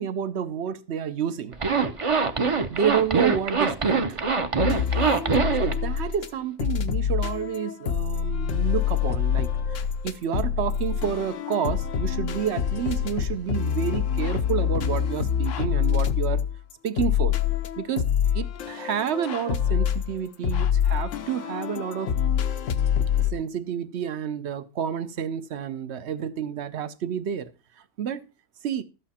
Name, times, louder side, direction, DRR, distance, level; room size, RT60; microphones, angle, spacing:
voice 1, 0.0-1.6 2.7-4.2 5.6-9.8 10.0-16.4 16.8-17.4 17.8-18.0 18.3-22.1 23.2-27.5 28.0-28.2 28.6-28.8, right 8 dB, 65° right, 1.1 m, -29 dB
Zipper (clothing), 1.5-5.8, right 5 dB, 30° right, 0.7 m, -23 dB
sound 1, 4.6-6.3 6.6-23.3, left 8 dB, 85° left, 1.2 m, -26 dB
12.5 x 8.4 x 4.3 m
omnidirectional pair, 1.3 m